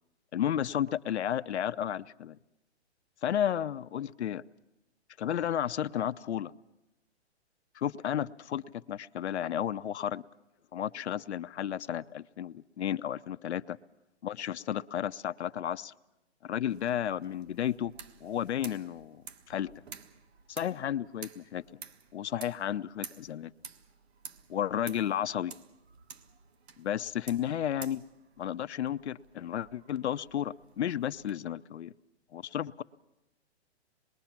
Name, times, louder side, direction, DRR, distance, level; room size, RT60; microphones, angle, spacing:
voice 1, 0.3-2.4 3.2-4.4 5.2-6.5 7.7-10.2 10.7-13.8 14.2-15.9 16.4-17.9 18.2-19.2 19.5-19.7 20.5-21.6 22.1-23.5 24.5-25.5 26.8-28.0 28.4-31.9 32.3-32.8, left 10 dB, 75° left, 12 dB, 0.7 m, -32 dB
sound 1, 16.7-31.3, right 6 dB, 65° right, 1.7 m, -51 dB
26.5 x 21.5 x 5.9 m, 0.93 s
hypercardioid pair, 155°, 34 cm